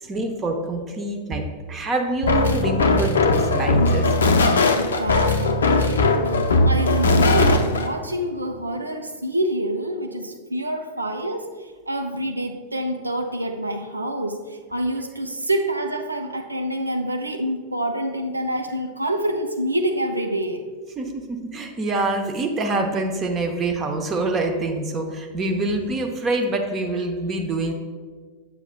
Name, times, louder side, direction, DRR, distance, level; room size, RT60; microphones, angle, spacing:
voice 1, 0.0-4.4 21.0-27.7, right 2 dB, 25° right, 4 dB, 0.8 m, -26 dB
sound 1, 2.2-7.9, left 2 dB, 70° left, 0.5 m, -19 dB
voice 2, 4.8-20.7, right 1 dB, 80° right, 5 dB, 0.6 m, -27 dB
8.1 x 7.0 x 2.2 m, 1.5 s
figure-of-eight pair, 90°, 0 cm